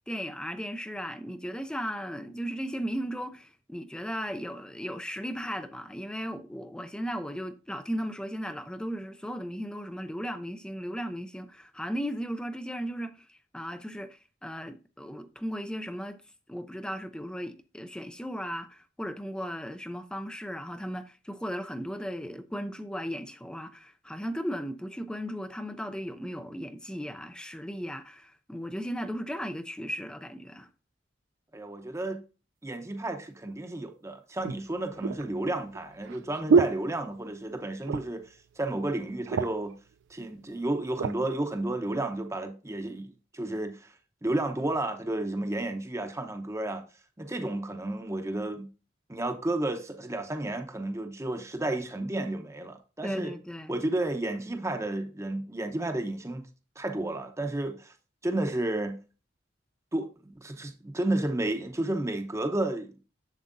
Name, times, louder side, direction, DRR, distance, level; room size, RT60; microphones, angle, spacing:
voice 1, 0.1-16.2 16.5-30.7 53.0-53.8, equal, 5° left, 0.4 m, -36 dB
voice 2, 31.5-32.2 32.6-39.7 40.1-43.1 43.3-43.9 44.2-46.8 47.2-48.7 49.1-53.3 53.7-56.5 56.8-57.9 58.2-59.0 59.9-63.0, right 1 dB, 15° right, 0.8 m, -32 dB
sound 1, 33.5-33.6 34.4-37.5 37.8-38.3 38.6-38.7 39.0-39.7 40.4-41.2 41.8-42.0, right 5 dB, 80° right, 0.4 m, -28 dB
7.4 x 7.0 x 2.6 m
head